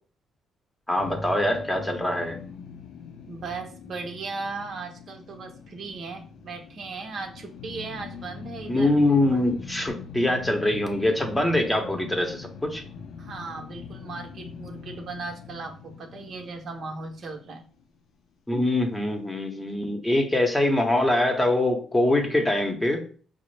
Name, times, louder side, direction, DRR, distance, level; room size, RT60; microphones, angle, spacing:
voice 1, 0.9-2.4 8.7-12.8 18.5-23.1, left 1 dB, 10° left, 3 dB, 0.8 m, -23 dB
sound 1, 1.0-18.2, left 5 dB, 75° left, 0.5 m, -42 dB
voice 2, 3.3-8.9 13.2-17.6, right 4 dB, 60° right, 3 dB, 0.8 m, -37 dB
5.0 x 2.0 x 3.2 m, 0.41 s
cardioid pair, 90°, 0 cm